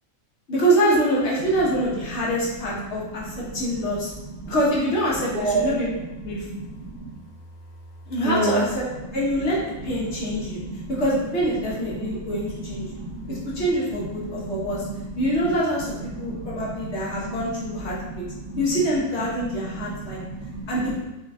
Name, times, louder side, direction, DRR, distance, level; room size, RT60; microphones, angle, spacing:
voice 1, 0.5-4.1 4.5-6.4 8.1-8.9 9.1-10.6 10.9-13.0 13.3-14.9 15.1-18.2 18.6-20.2 20.7-21.0, equal, 55° left, -5 dB, 1.3 m, -25 dB
voice 2, 5.3-5.7 6.4-7.1 8.2-8.6 10.6-10.8 12.0-12.4 12.8-13.4 14.2-14.9 16.2-17.0 18.0-18.1 18.4-18.6 19.6-20.6, right 2 dB, 55° right, -5 dB, 0.6 m, -30 dB
4.3 x 2.3 x 3.4 m, 1.0 s
omnidirectional pair, 1.4 m